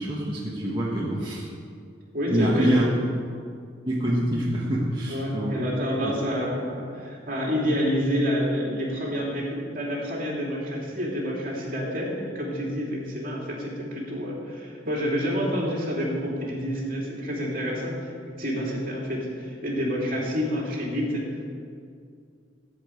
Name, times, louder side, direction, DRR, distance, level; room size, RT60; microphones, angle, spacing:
voice 1, 0.0-1.5 2.3-2.9 3.9-5.5 6.0-6.1, right 1 dB, 25° right, -7 dB, 1.5 m, -25 dB
voice 2, 2.1-3.1 5.1-21.6, equal, 50° right, -3 dB, 2.9 m, -28 dB
15.0 x 5.3 x 8.4 m, 2.3 s
head